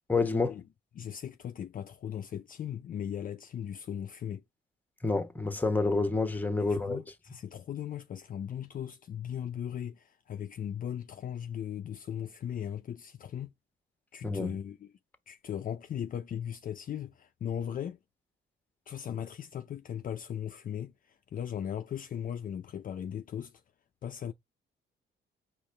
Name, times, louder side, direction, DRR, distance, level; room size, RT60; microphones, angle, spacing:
voice 1, 0.1-0.6 5.0-7.0 14.2-14.5, left 3 dB, 10° left, 0.9 m, -28 dB
voice 2, 0.9-4.4 6.6-13.5 14.1-14.9 15.3-18.0 18.9-23.5 24.0-24.3, left 9 dB, 45° left, 0.4 m, -38 dB
4.8 x 3.1 x 3.2 m
cardioid pair, 90°, 20 cm